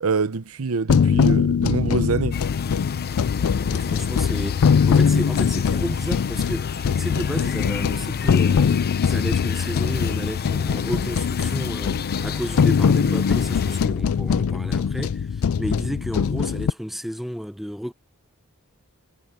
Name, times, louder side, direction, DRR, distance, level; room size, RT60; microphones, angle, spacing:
voice 1, 0.0-2.4, right 4 dB, 70° right, 0.8 m, -25 dB
sound 1, 0.9-16.7, left 6 dB, 65° left, 0.4 m, -22 dB
sound 2, 2.3-13.9, left 6 dB, 45° left, 0.8 m, -34 dB
voice 2, 3.7-17.9, equal, ahead, 0.8 m, -32 dB
head